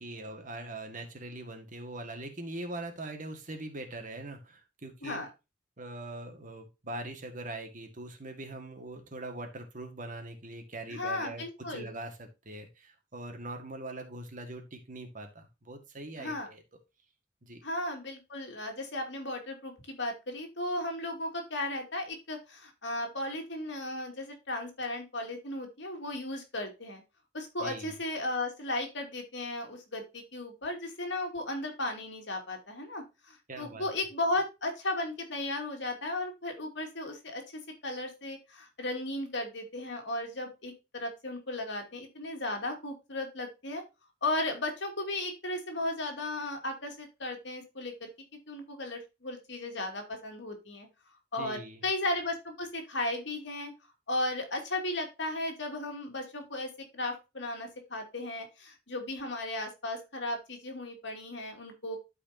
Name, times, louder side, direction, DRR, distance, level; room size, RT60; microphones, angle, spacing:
voice 1, 0.0-5.2 5.8-16.6 17.4-17.6 27.6-27.9 33.5-33.9 51.4-51.8, right 2 dB, 45° right, 5 dB, 1.8 m, -42 dB
voice 2, 10.9-11.9 16.2-16.5 17.6-27.0 27.3-43.8 44.2-48.1 48.5-50.9 51.3-53.7 54.1-62.0, left 2 dB, 65° left, 3 dB, 2.5 m, -35 dB
12.5 x 4.8 x 2.8 m, 0.26 s
head